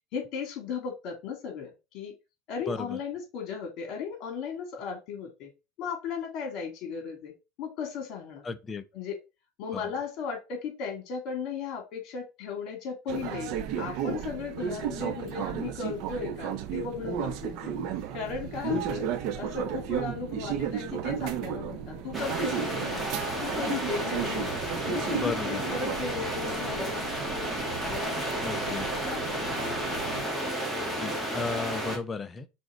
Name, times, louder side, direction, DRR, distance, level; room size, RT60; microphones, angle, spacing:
voice 1, 0.1-2.1 2.5-5.5 5.8-8.4 8.9-9.2 9.6-17.7 18.1-19.0 19.4-23.0 23.4-27.4 27.9-28.2 28.6-28.7 29.0-29.6 30.2-30.5, left 6 dB, 55° left, 2.4 m, -36 dB
voice 2, 2.7-3.0 8.4-8.8 9.7-9.8 18.7-18.8 25.2-25.6 28.4-28.9 31.0-32.5, left 4 dB, 20° left, 0.7 m, -34 dB
sound 1, 13.1-30.2, right 8 dB, 60° right, 0.8 m, -34 dB
sound 2, 22.1-32.0, right 1 dB, 5° right, 2.0 m, -32 dB
6.1 x 3.9 x 4.0 m
supercardioid pair, 140°, 0 cm